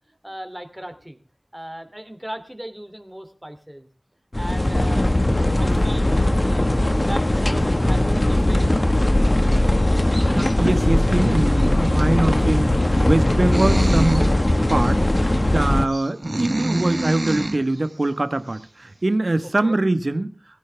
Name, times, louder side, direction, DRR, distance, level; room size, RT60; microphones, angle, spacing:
voice 1, 0.2-1.2 1.5-3.9 4.4-5.1 5.3-6.2 6.4-9.0 14.7-15.1 19.4-19.8, equal, 10° right, 7 dB, 2.9 m, -37 dB
sound 1, 4.3-15.9, left 1 dB, 40° left, 1.6 m, -19 dB
voice 2, 10.3-12.7 13.0-14.3 14.7-15.0 15.4-20.3, right 2 dB, 65° right, 11 dB, 1.3 m, -23 dB
sound 2, 13.5-14.3 14.9-15.0 15.9-17.6, right 1 dB, 50° right, 1.3 m, -25 dB
19.5 x 16.0 x 3.5 m, 0.36 s
wide cardioid pair, 45°, 0 cm